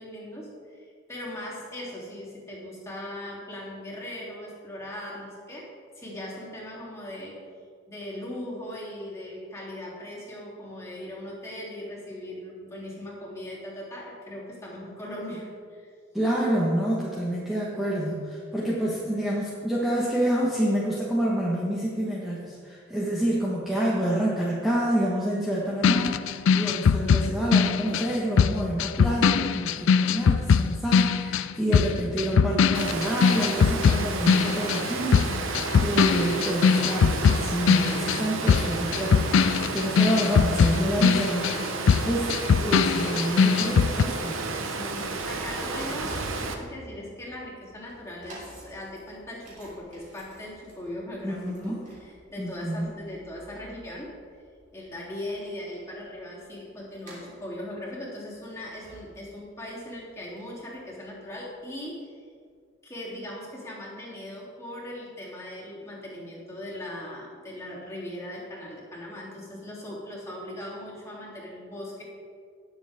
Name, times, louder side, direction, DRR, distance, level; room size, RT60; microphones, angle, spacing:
voice 1, 0.0-5.7 5.9-7.4 7.9-15.9 44.7-54.2 54.7-62.2 62.8-72.0, left 1 dB, 15° left, -6 dB, 3.1 m, -39 dB
voice 2, 16.1-39.3 39.7-44.5 51.2-51.8 52.4-52.9, right 1 dB, ahead, -6 dB, 1.4 m, -28 dB
sound 1, 25.8-34.9 35.1-44.0, left 6 dB, 70° left, 0.4 m, -21 dB
Water, 32.7-46.5, right 3 dB, 75° right, 1.1 m, -32 dB
sound 2, 45.5-61.7 62.3-62.4, right 1 dB, 40° right, 3.2 m, -50 dB
18.5 x 7.2 x 3.6 m, 2.1 s
head